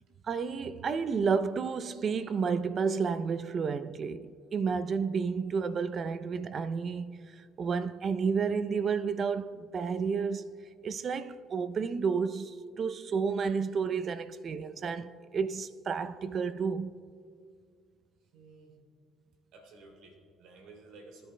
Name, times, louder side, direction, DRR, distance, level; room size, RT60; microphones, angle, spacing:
voice 1, 0.2-10.4 10.8-16.9, right 5 dB, 45° right, 0.5 m, -31 dB
voice 2, 18.3-18.8 19.5-21.3, right 3 dB, 75° right, 2.8 m, -53 dB
23.5 x 10.0 x 2.2 m
supercardioid pair, 80°, 0 cm